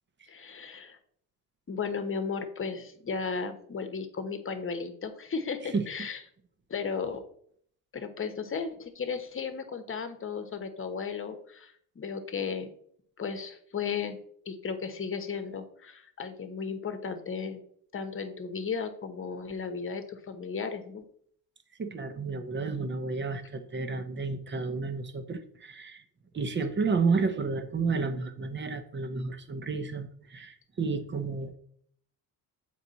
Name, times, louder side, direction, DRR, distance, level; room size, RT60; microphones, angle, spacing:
voice 1, 0.3-1.0 1.7-6.2 6.7-7.2 7.9-12.7 13.2-14.2 14.4-17.6 17.9-21.1, left 5 dB, 35° left, 8 dB, 1.1 m, -35 dB
voice 2, 5.7-6.1 21.8-26.0 26.3-31.6, right 4 dB, 30° right, 9 dB, 0.9 m, -31 dB
7.2 x 4.8 x 4.1 m, 0.63 s
cardioid pair, 100°, 39 cm